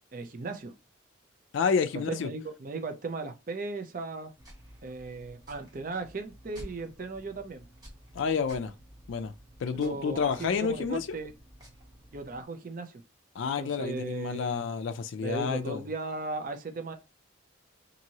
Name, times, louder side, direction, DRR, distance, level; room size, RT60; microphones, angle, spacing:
voice 1, 0.1-0.7 2.1-4.3 4.8-7.6 9.7-11.3 12.1-13.0 13.4-14.5 15.2-16.9, right 3 dB, 40° right, 0.4 m, -37 dB
voice 2, 1.5-2.3 8.1-8.7 9.1-9.3 9.6-11.2 13.4-15.8, left 5 dB, 70° left, 0.3 m, -29 dB
sound 1, 4.4-12.4, equal, 20° right, 0.9 m, -52 dB
2.9 x 2.6 x 2.7 m
head